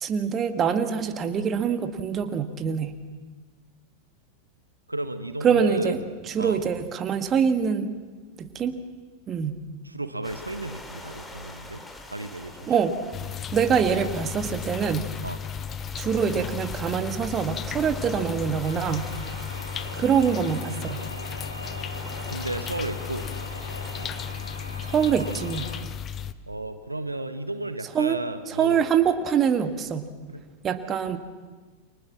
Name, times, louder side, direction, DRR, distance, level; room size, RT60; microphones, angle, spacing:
voice 1, 0.0-3.0 5.4-7.9 8.4-8.8 9.3-9.6 12.7-13.0 13.5-15.1 16.0-19.1 19.9-21.1 24.8-25.7 27.9-28.2 28.5-30.1 30.6-31.2, right 7 dB, 25° right, 9 dB, 1.6 m, -25 dB
voice 2, 4.9-6.0 6.4-6.6 9.8-11.8 12.1-12.7 15.2-15.4 22.3-23.2 26.5-28.8 30.3-30.4, right 2 dB, 85° right, 10 dB, 1.4 m, -33 dB
sound 1, 10.2-24.3, left 2 dB, 10° left, 2.7 m, -43 dB
sound 2, 13.1-26.3, left 8 dB, 25° left, 1.0 m, -35 dB
sound 3, 18.6-25.8, equal, 90° left, 3.9 m, -40 dB
29.5 x 24.5 x 7.4 m, 1.4 s
figure-of-eight pair, 90°, 0 cm